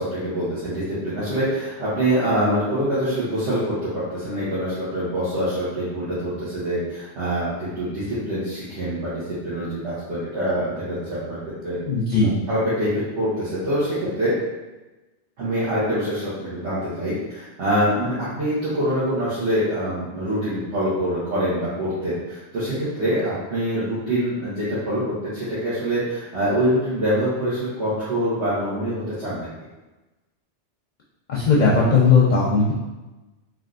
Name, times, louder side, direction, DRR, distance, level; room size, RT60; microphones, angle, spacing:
voice 1, 0.0-11.8 12.2-14.4 15.4-29.5, equal, 90° right, -12 dB, 1.3 m, -25 dB
voice 2, 11.9-12.3 31.3-32.7, left 4 dB, 55° left, -5 dB, 0.5 m, -17 dB
3.4 x 2.4 x 2.4 m, 1.1 s
omnidirectional pair, 1.2 m